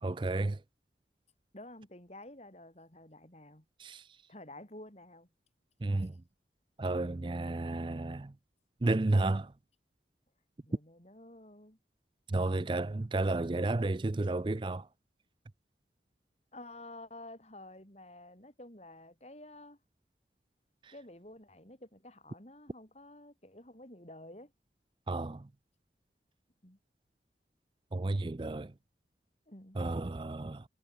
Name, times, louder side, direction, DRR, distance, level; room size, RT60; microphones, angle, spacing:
voice 1, 0.0-0.6 3.8-4.0 5.8-6.1 6.8-8.3 8.8-9.5 12.3-14.9 20.8-20.9 25.1-25.5 27.9-28.7 29.8-30.6, right 2 dB, 25° right, 0.4 m, -32 dB
voice 2, 1.5-3.6 4.3-5.3 5.9-6.1 10.6-11.8 16.5-19.8 20.9-24.5 26.6-26.8 29.5-29.8, left 1 dB, 35° left, 4.8 m, -51 dB
head